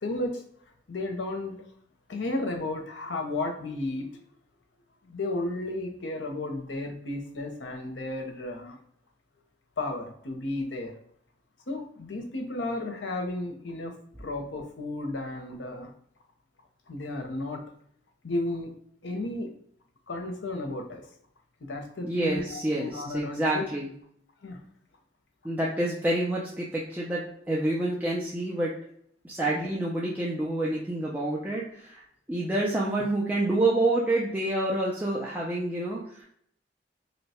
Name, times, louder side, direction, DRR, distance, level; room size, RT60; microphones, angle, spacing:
voice 1, 0.0-0.4 0.9-1.7 2.1-4.2 5.0-8.8 9.8-11.0 11.7-13.9 14.2-15.9 16.9-17.6 18.2-18.7 19.0-19.5 20.1-21.1 21.7-23.6 24.4-24.6 29.5-29.7, left 2 dB, 75° left, 3 dB, 0.7 m, -33 dB
voice 2, 22.0-23.9 25.4-27.2 27.5-28.7 29.2-32.0 32.3-36.2, right 1 dB, 10° right, -6 dB, 0.4 m, -28 dB
2.8 x 2.2 x 4.1 m, 0.67 s
head